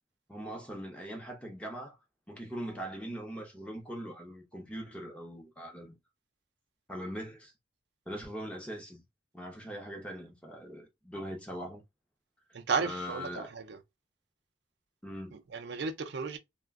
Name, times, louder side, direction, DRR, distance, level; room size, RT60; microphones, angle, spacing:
voice 1, 0.3-2.0 2.3-6.0 6.9-7.5 8.1-9.0 9.3-11.8 12.8-13.5 15.0-15.3, equal, 5° left, 0.6 m, -41 dB
voice 2, 12.5-13.8 15.3-16.4, right 5 dB, 55° right, 0.4 m, -34 dB
2.4 x 2.1 x 3.5 m
head